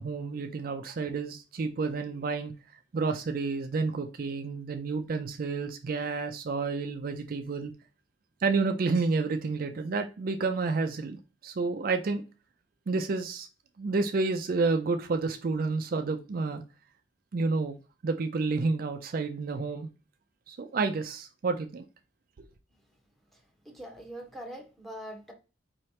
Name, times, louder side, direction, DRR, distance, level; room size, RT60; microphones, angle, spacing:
voice 1, 0.0-2.5 2.9-7.7 8.4-12.2 12.9-13.5 13.8-16.6 17.3-17.8 18.0-19.9 20.5-21.8, right 4 dB, 50° right, 0.4 m, -30 dB
voice 2, 23.6-25.3, equal, ahead, 1.0 m, -42 dB
4.7 x 3.2 x 2.8 m
head